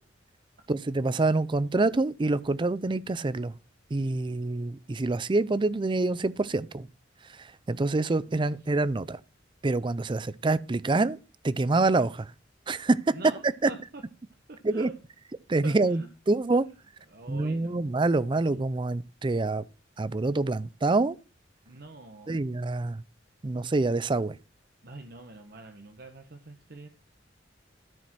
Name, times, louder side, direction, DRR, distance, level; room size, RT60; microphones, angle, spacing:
voice 1, 0.7-3.6 3.9-6.9 7.7-9.2 9.6-11.2 11.4-12.3 12.7-13.1 13.6-13.7 14.6-14.9 15.5-16.7 17.3-19.6 20.0-21.2 22.3-23.0 23.4-24.4, right 2 dB, 25° right, 0.4 m, -26 dB
voice 2, 8.3-8.7 13.1-14.0 14.5-14.9 15.6-16.1 17.1-18.2 21.6-22.3 24.8-26.9, right 2 dB, 55° right, 1.2 m, -45 dB
13.5 x 5.2 x 6.0 m
head